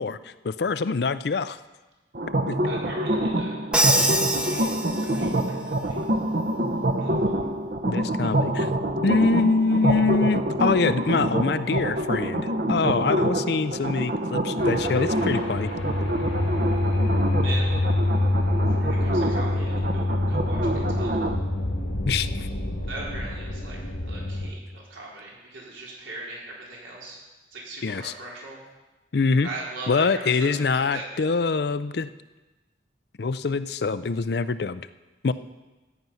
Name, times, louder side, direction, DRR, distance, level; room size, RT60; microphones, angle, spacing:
voice 1, 0.0-1.6 2.5-2.6 7.8-8.7 9.0-15.7 22.0-22.5 27.8-28.1 29.1-29.5 29.9-32.1 33.2-34.8 35.2-35.3, left 4 dB, 55° left, 14 dB, 0.5 m, -24 dB
sound 1, 2.1-21.4, right 1 dB, 50° right, 0.8 m, -26 dB
voice 2, 2.6-3.6 4.2-4.7 4.9-6.0 7.0-7.5 17.4-17.7 18.5-21.3 22.9-23.8 24.1-27.2 27.5-28.6 29.4-30.5 30.9-31.3, right 2 dB, 85° right, -4 dB, 3.9 m, -40 dB
Crash cymbal, 3.7-5.5, right 1 dB, 5° right, 0.7 m, -24 dB
sound 2, 14.6-24.5, left 1 dB, 80° left, 1.7 m, -26 dB
14.0 x 9.3 x 5.6 m, 1.2 s
head